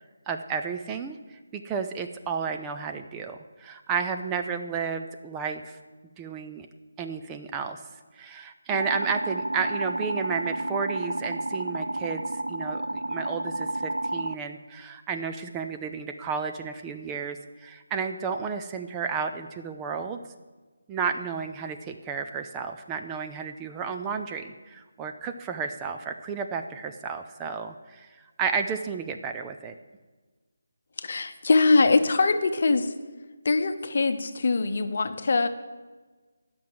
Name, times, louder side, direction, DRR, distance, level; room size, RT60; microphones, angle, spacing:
voice 1, 0.3-5.8 6.2-6.7 7.0-7.8 8.1-20.2 20.9-29.7, right 6 dB, 15° right, 6 dB, 0.4 m, -32 dB
sound 1, 8.7-14.4, right 1 dB, 80° right, 0.3 m, -31 dB
voice 2, 31.0-32.9 33.4-35.5, left 3 dB, 50° left, 9 dB, 0.8 m, -22 dB
10.0 x 6.1 x 7.5 m, 1.3 s
figure-of-eight pair, 155°, 0 cm